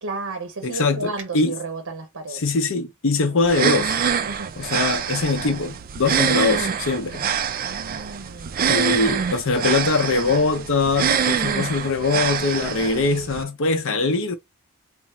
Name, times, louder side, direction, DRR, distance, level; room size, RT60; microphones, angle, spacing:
voice 1, 0.0-2.4 3.3-3.4 4.3-4.6 7.6-8.7, right 3 dB, 70° right, 0.8 m, -33 dB
voice 2, 0.6-1.6 2.3-4.0 4.6-7.3 8.7-14.3, left 3 dB, 60° left, 0.7 m, -22 dB
sound 1, 3.5-13.4, right 7 dB, 40° right, 0.4 m, -25 dB
3.5 x 2.0 x 4.1 m
head